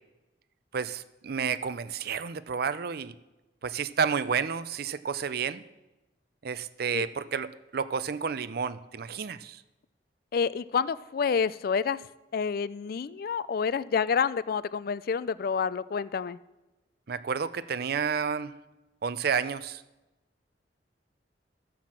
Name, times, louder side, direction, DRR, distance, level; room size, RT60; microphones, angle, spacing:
voice 1, 0.7-3.1 3.6-5.6 6.4-9.6 17.1-18.5 19.0-19.8, right 6 dB, 60° right, 14 dB, 0.5 m, -30 dB
voice 2, 10.3-12.0 12.3-16.4, left 6 dB, 55° left, 17 dB, 0.4 m, -28 dB
13.5 x 5.9 x 7.4 m, 1.0 s
head